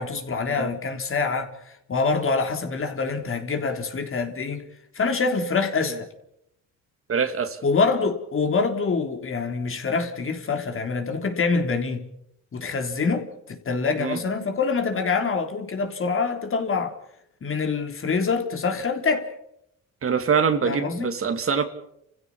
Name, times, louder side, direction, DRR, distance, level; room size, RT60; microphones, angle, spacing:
voice 1, 0.0-4.6 4.9-6.1 7.6-12.1 12.5-16.9 17.4-19.3 20.7-21.1, left 4 dB, 45° left, 3.5 m, -25 dB
voice 2, 7.1-7.6 14.0-14.2 20.0-21.6, right 6 dB, 45° right, 2.6 m, -24 dB
29.5 x 16.0 x 7.1 m
cardioid pair, 90°, 30 cm